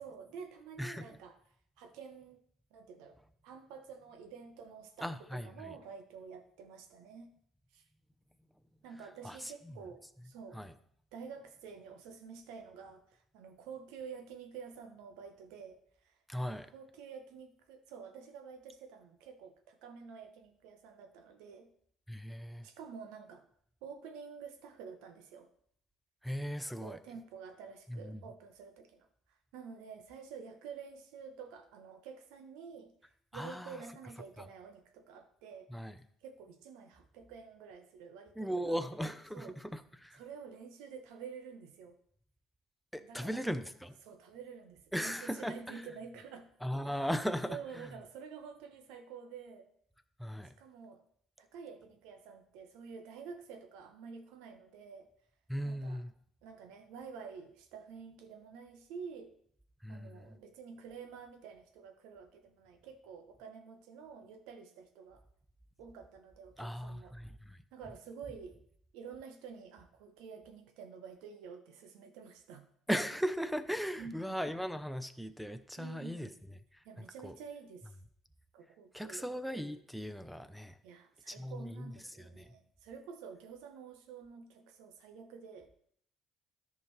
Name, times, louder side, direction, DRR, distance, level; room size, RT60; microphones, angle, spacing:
voice 1, 0.0-1.4 1.8-2.4 2.7-3.2 3.4-7.3 7.7-7.9 8.8-10.6 11.1-21.7 22.6-23.4 23.8-25.5 26.8-32.9 33.3-35.7 36.2-39.6 40.1-42.0 43.0-43.4 44.0-46.5 46.8-47.1 47.5-49.7 50.6-51.0 51.4-55.1 55.6-56.0 56.4-59.3 59.9-65.2 65.8-67.2 67.7-68.6 68.9-72.6 74.0-74.4 75.8-76.4 76.8-77.9 78.5-79.3 80.8-85.8, right 6 dB, 80° right, 7 dB, 1.0 m, -49 dB
voice 2, 5.0-5.7 9.2-9.7 10.5-10.7 16.3-16.7 22.1-22.7 26.2-27.0 27.9-28.2 33.3-33.8 35.7-35.9 38.4-40.2 42.9-44.0 44.9-45.8 46.6-47.9 50.2-50.5 55.5-56.1 59.8-60.4 66.6-67.6 72.9-76.3 76.7-77.3 78.9-80.8 81.3-81.9 82.2-82.5, equal, ahead, 11 dB, 0.7 m, -38 dB
13.5 x 5.2 x 3.2 m, 0.64 s
hypercardioid pair, 60°, 0 cm